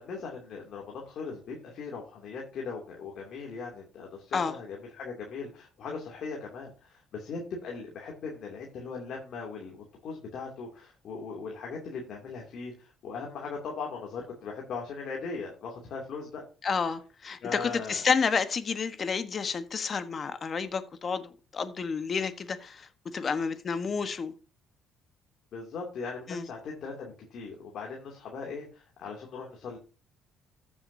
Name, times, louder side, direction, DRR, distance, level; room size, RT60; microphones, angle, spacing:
voice 1, 0.0-16.4 17.4-18.0 23.9-24.1 25.5-29.8, left 4 dB, 65° left, 2.7 m, -39 dB
voice 2, 16.6-24.3 26.3-26.5, left 5 dB, 40° left, 1.3 m, -30 dB
14.5 x 7.3 x 2.8 m
cardioid pair, 85°, 0 cm